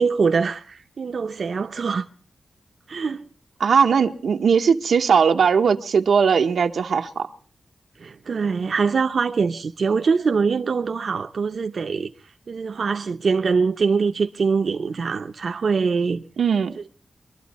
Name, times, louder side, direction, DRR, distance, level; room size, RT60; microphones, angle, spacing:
voice 1, 0.0-2.1 2.9-3.3 8.0-12.1 12.5-16.2 16.8-16.9, right 5 dB, 60° right, 0.6 m, -23 dB
voice 2, 3.6-7.3 16.4-16.8, right 6 dB, 90° right, 0.8 m, -19 dB
24.0 x 12.0 x 4.1 m
wide cardioid pair, 120°, 0 cm